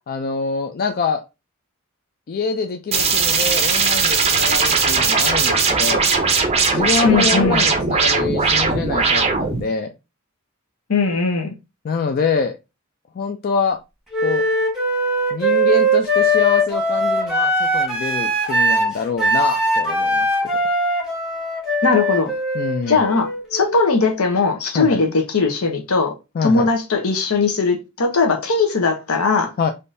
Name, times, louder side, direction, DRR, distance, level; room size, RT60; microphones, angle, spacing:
voice 1, 0.1-1.2 2.3-6.0 6.7-9.9 11.8-12.6 13.1-13.8 14.2-14.4 15.3-20.3 22.5-23.0 24.7-25.0 26.3-26.7 29.6-29.7, left 5 dB, 40° left, 0.3 m, -25 dB
sound 1, 2.9-9.6, right 5 dB, 30° right, 0.5 m, -18 dB
voice 2, 7.0-7.7 10.9-11.5 21.8-22.3 22.9-26.1 26.4-29.5, left 4 dB, 75° left, 0.8 m, -19 dB
Wind instrument woodwind instrument, 14.1-23.9, equal, ahead, 1.0 m, -20 dB
3.5 x 2.6 x 2.6 m
head